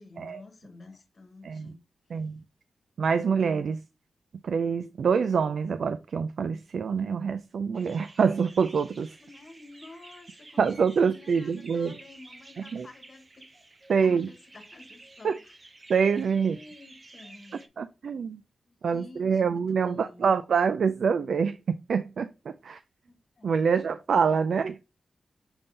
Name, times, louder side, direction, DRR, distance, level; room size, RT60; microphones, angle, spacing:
voice 1, 0.0-1.8 2.1-2.2 9.2-13.5 14.0-15.6 16.3-17.6 18.7-20.4 23.1-23.8, left 2 dB, 40° left, 1.4 m, -50 dB
voice 2, 3.0-3.8 4.4-9.2 10.6-11.9 12.7-12.9 13.9-14.3 15.2-15.4 15.9-16.6 17.8-18.4 18.8-22.8 23.4-24.8, right 6 dB, 75° right, 0.4 m, -26 dB
sound 1, 7.7-17.7, right 2 dB, 30° right, 0.9 m, -52 dB
7.0 x 3.6 x 4.0 m
wide cardioid pair, 160°, 0 cm